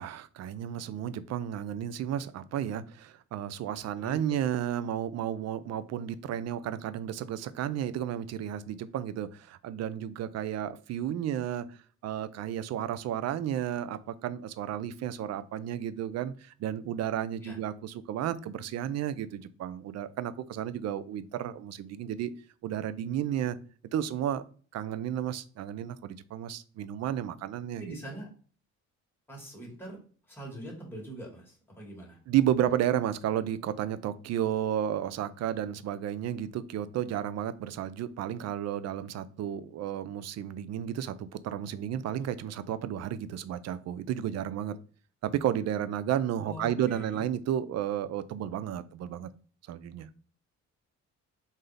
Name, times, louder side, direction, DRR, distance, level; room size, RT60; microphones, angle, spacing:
voice 1, 0.0-11.8 12.0-22.3 22.6-23.6 23.9-24.4 24.7-27.9 32.3-44.8 45.2-49.3 49.7-50.1, right 10 dB, 60° right, 14 dB, 0.4 m, -32 dB
voice 2, 4.0-4.4 17.4-17.6 27.8-28.3 29.3-30.0 30.3-32.2 46.4-47.2, right 1 dB, 5° left, -3 dB, 1.9 m, -43 dB
3.8 x 2.7 x 3.2 m, 0.41 s
cardioid pair, 90°, 30 cm